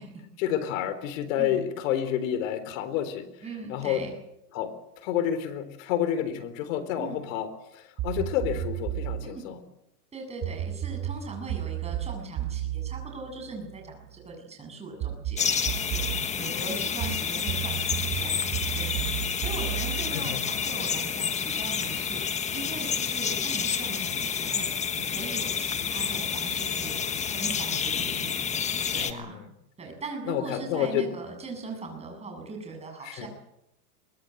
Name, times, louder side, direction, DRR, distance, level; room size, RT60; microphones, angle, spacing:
voice 1, 0.4-3.3 3.7-4.0 4.5-4.7 5.0-7.5 7.7-9.6 16.4-16.7 20.1-20.4 28.9-29.5 30.3-31.1 33.0-33.3, left 10 dB, 55° left, 12 dB, 4.0 m, -29 dB
voice 2, 3.4-4.1 7.0-7.2 9.2-9.5 10.1-22.3 22.5-27.0 27.3-28.3 28.9-29.4 29.8-33.3, right 3 dB, 15° right, 3 dB, 7.8 m, -40 dB
sound 1, 8.0-9.3 10.4-14.1 15.0-16.3 17.0-20.9, right 12 dB, 30° right, 1.7 m, -33 dB
sound 2, 15.4-29.1, left 7 dB, 15° left, 1.2 m, -29 dB
23.5 x 20.0 x 8.0 m, 0.83 s
supercardioid pair, 145°, 47 cm